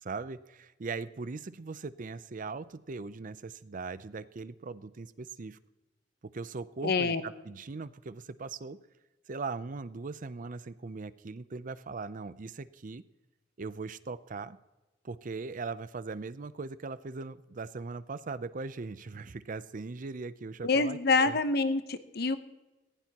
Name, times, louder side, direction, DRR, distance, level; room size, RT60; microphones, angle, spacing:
voice 1, 0.0-5.6 6.3-8.8 9.3-13.0 13.6-14.6 15.0-21.4, right 4 dB, 45° right, 15 dB, 0.5 m, -40 dB
voice 2, 6.8-7.2 20.6-22.4, left 3 dB, 60° left, 10 dB, 0.9 m, -26 dB
19.0 x 16.0 x 2.9 m, 1.1 s
head